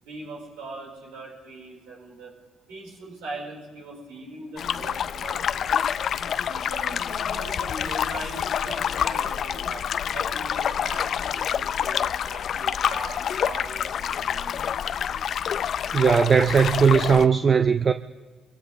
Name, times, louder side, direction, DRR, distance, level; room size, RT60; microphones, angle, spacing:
voice 1, 0.0-2.3 2.7-5.8 6.5-9.8 10.1-14.7, right 2 dB, 85° right, 4.7 m, -40 dB
sound 1, 4.6-17.3, left 8 dB, 60° left, 0.4 m, -27 dB
voice 2, 15.9-17.9, right 6 dB, 45° right, 0.5 m, -18 dB
25.0 x 16.0 x 3.4 m
supercardioid pair, 60°, 0 cm